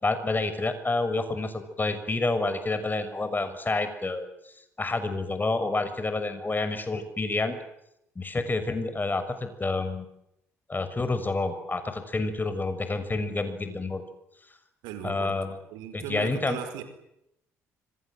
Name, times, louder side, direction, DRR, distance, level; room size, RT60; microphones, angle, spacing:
voice 1, 0.0-4.3 4.8-7.6 8.2-10.1 10.7-14.0 15.0-15.6 15.9-16.6, left 3 dB, 25° left, 10 dB, 6.3 m, -28 dB
voice 2, 14.8-15.4 15.7-16.8, right 10 dB, 75° right, 9 dB, 4.6 m, -37 dB
25.5 x 25.5 x 7.7 m, 0.81 s
hypercardioid pair, 50°, 7 cm